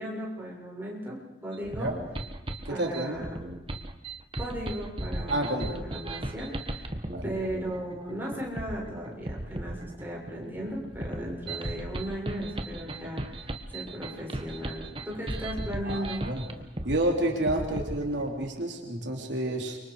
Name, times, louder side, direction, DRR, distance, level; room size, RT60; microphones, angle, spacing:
voice 1, 0.0-1.9 2.7-3.4 4.4-6.9 7.2-16.2, equal, 10° right, -4 dB, 6.8 m, -36 dB
sound 1, 1.5-18.5, right 1 dB, 30° right, 1.5 m, -36 dB
voice 2, 2.7-3.1 5.3-5.7 7.1-7.3 11.5-11.6 15.8-16.4 16.8-19.8, right 1 dB, 75° right, 1 dB, 3.5 m, -29 dB
30.0 x 25.0 x 4.9 m, 1.0 s
head